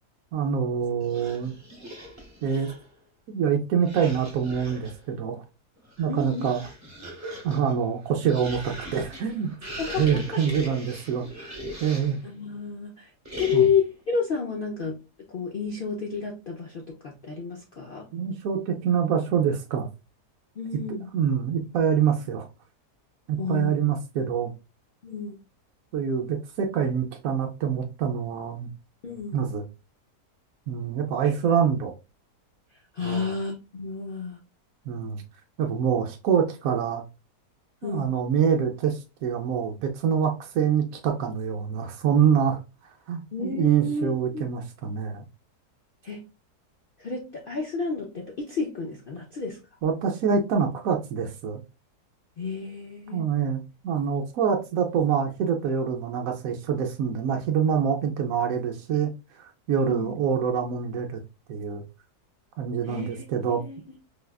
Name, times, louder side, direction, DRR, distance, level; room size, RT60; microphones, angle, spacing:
voice 1, 0.3-1.5 2.4-2.7 3.3-5.4 6.0-6.7 7.4-11.5 11.8-12.2 13.5-13.7 18.1-19.9 20.9-22.5 23.3-24.5 25.9-28.7 29.3-29.7 30.7-31.9 33.0-33.3 34.9-35.2 35.6-37.0 37.8-42.6 43.1-45.2 49.8-51.6 53.1-59.1 59.4-61.2 61.5-61.8 62.6-63.6, right 7 dB, 70° right, 0.9 m, -25 dB
sound 1, 1.0-2.9 3.8-5.0 5.8-12.3 13.2-13.9, equal, 15° right, 0.8 m, -40 dB
voice 2, 6.1-6.5 9.8-10.4 12.2-13.1 13.4-15.0 15.3-18.1 20.6-21.1 23.4-24.0 25.0-25.4 29.0-29.4 32.9-34.4 37.8-38.1 43.3-44.5 46.0-46.2 47.0-49.6 52.4-53.3 59.8-60.2 62.8-64.0, left 5 dB, 80° left, 0.4 m, -30 dB
4.8 x 2.3 x 2.3 m
omnidirectional pair, 1.7 m